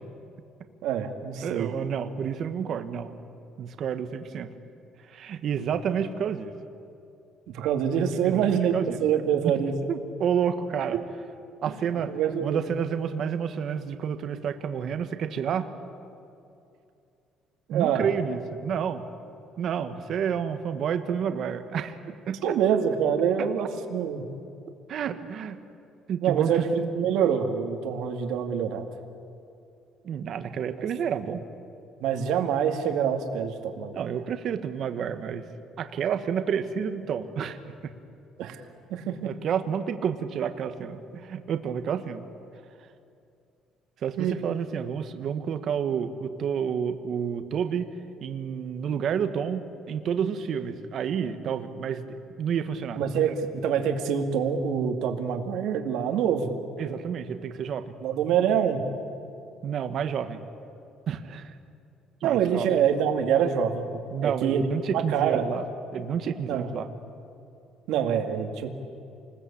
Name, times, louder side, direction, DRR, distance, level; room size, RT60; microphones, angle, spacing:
voice 1, 0.8-1.7 7.5-8.7 9.0-9.7 12.1-12.6 17.7-18.1 22.4-24.2 26.2-28.8 30.8-30.9 32.0-34.0 38.4-38.6 38.9-39.3 44.2-44.4 52.9-56.5 58.0-58.8 62.2-63.8 64.2-64.6 64.9-65.5 66.5-66.7 67.9-68.7, right 8 dB, 75° right, 5 dB, 2.2 m, -25 dB
voice 2, 1.4-3.1 3.6-4.5 5.0-6.5 8.2-9.0 9.4-9.5 9.9-11.0 11.6-12.1 12.4-15.7 17.7-19.1 19.6-22.5 23.4-23.5 24.9-25.6 26.1-26.9 30.0-31.5 33.9-35.4 35.8-37.6 37.8-37.9 39.2-42.2 44.0-47.9 48.2-53.0 56.8-57.9 59.6-60.4 61.1-61.5 62.2-62.8 64.1-65.6 65.9-66.9, right 7 dB, 50° right, 9 dB, 1.4 m, -30 dB
28.5 x 20.0 x 8.6 m, 2.6 s
cardioid pair, 150°, 0 cm